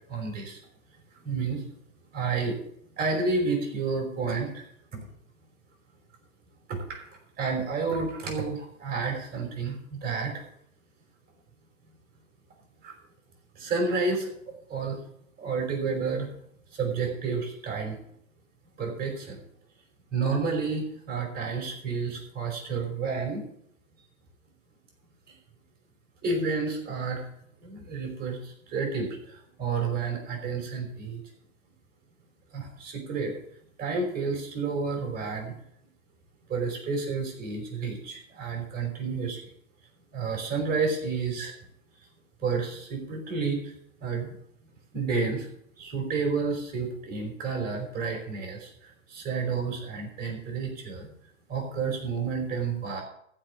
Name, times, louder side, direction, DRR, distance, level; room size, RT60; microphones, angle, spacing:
voice 1, 0.1-0.6 1.2-1.6 2.1-2.6 3.0-4.6 6.7-7.0 7.4-10.4 12.8-13.0 13.5-15.0 15.4-16.3 16.7-18.0 18.8-19.4 20.1-23.4 25.3-25.4 26.2-27.3 27.6-31.2 32.5-33.4 33.8-35.6 36.5-39.5 40.1-41.5 42.4-43.7 44.0-44.4 44.9-45.5 45.8-51.1 51.5-53.0, right 4 dB, 20° right, 0 dB, 5.1 m, -30 dB
14.5 x 5.8 x 7.7 m, 0.69 s
hypercardioid pair, 115°, 41 cm